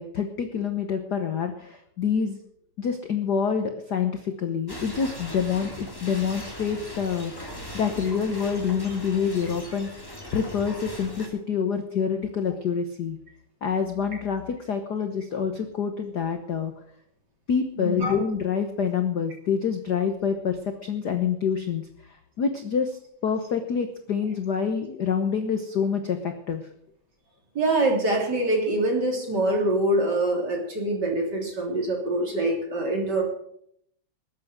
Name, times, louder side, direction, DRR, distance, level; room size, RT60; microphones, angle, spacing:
voice 1, 0.0-2.4 2.8-7.5 7.7-13.2 13.6-16.7 17.5-26.6, left 6 dB, 65° left, 6 dB, 1.0 m, -27 dB
sound 1, 4.7-11.3, equal, 5° left, 2.6 m, -39 dB
voice 2, 17.8-18.1 27.6-33.2, right 1 dB, 35° right, 1 dB, 3.6 m, -24 dB
19.5 x 8.4 x 6.6 m, 0.71 s
omnidirectional pair, 3.4 m